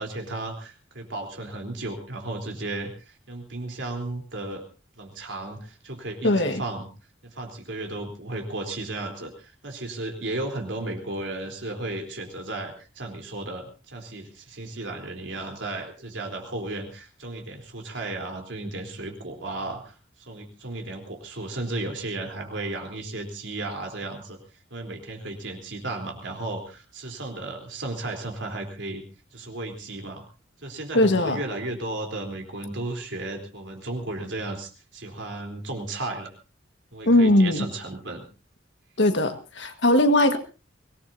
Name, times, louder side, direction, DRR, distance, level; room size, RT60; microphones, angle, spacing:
voice 1, 0.0-4.6 5.0-6.9 7.2-20.0 20.3-24.4 24.7-29.0 29.3-30.2 30.6-36.3 36.9-38.2, right 2 dB, 75° right, 2 dB, 3.8 m, -34 dB
voice 2, 6.2-6.6 30.9-31.4 37.1-37.7 39.0-40.4, left 1 dB, 70° left, 7 dB, 1.7 m, -19 dB
24.0 x 18.5 x 2.8 m, 0.33 s
head